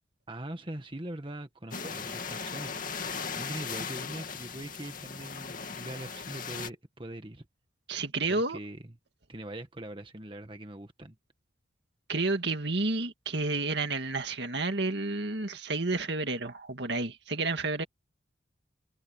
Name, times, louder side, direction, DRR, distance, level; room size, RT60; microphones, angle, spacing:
voice 1, 0.3-2.7 3.3-7.4 8.3-8.9 9.3-11.2, right 1 dB, 25° right, 1.6 m, -42 dB
sound 1, 1.7-6.7, left 5 dB, 45° left, 2.5 m, -38 dB
voice 2, 7.9-8.6 12.1-17.8, right 3 dB, 60° right, 2.1 m, -30 dB
head